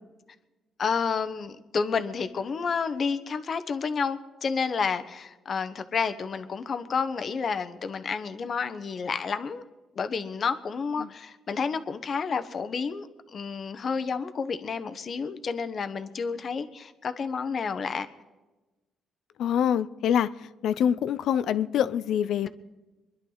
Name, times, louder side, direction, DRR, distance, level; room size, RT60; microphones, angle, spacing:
voice 1, 0.8-9.6 9.9-18.1 22.4-22.5, left 5 dB, 50° left, 1.1 m, -30 dB
voice 2, 19.4-20.3 20.6-22.5, left 9 dB, 75° left, 0.6 m, -25 dB
24.5 x 11.0 x 4.0 m
cardioid pair, 90°, 0 cm